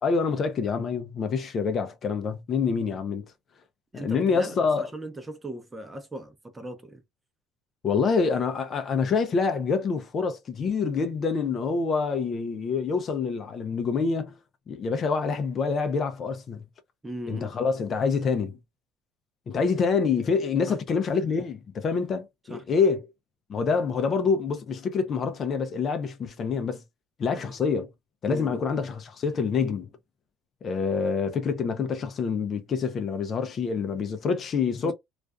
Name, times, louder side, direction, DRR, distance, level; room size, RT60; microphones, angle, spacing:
voice 1, 0.0-3.3 3.9-4.8 7.8-14.4 14.7-16.6 17.3-18.6 19.5-23.1 23.5-26.8 27.2-27.9 28.2-29.9 30.6-34.9, left 5 dB, 40° left, 0.5 m, -26 dB
voice 2, 3.9-7.0 17.0-17.5 20.7-20.8 22.5-22.6 27.3-27.5 28.3-28.6 34.8-34.9, right 1 dB, 15° right, 0.7 m, -38 dB
2.4 x 2.3 x 2.3 m
cardioid pair, 110°, 0 cm